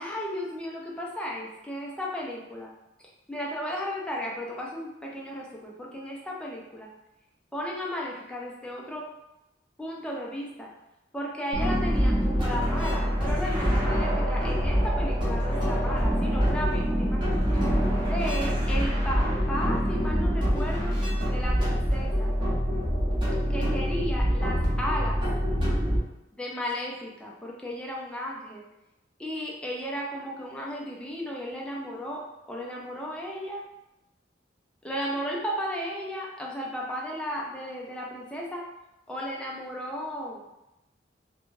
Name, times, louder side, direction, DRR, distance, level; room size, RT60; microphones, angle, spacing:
voice 1, 0.0-2.7 3.3-6.9 7.5-9.0 9.8-10.7 11.1-17.2 18.0-20.9 21.3-22.3 23.5-25.2 26.4-28.6 29.2-32.2 32.5-33.6 34.8-38.6 39.1-40.4, equal, 5° left, -3 dB, 0.4 m, -34 dB
sound 1, 11.5-26.0, equal, 25° right, 0.7 m, -25 dB
2.5 x 2.2 x 3.1 m, 0.92 s
head